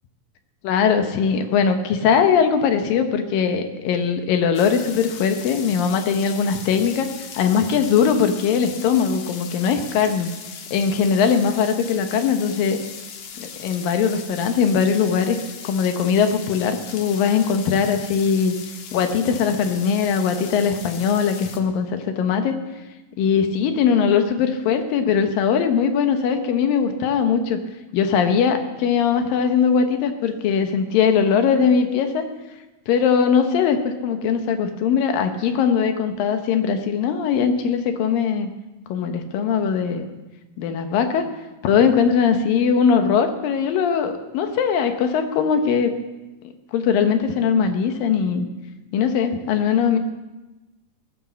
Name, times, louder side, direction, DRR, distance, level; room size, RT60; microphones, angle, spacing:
voice 1, 0.6-7.1 7.3-10.3 10.7-12.8 13.4-15.4 15.6-18.6 18.9-22.5 23.2-27.6 27.9-32.2 32.9-38.5 38.9-40.1 40.6-41.3 41.6-45.9 46.7-48.5 48.9-50.0, left 6 dB, 90° left, 6 dB, 2.9 m, -20 dB
sound 1, 4.6-21.6, left 7 dB, 65° left, 2.6 m, -38 dB
20.0 x 9.2 x 7.3 m, 1.1 s
omnidirectional pair, 3.9 m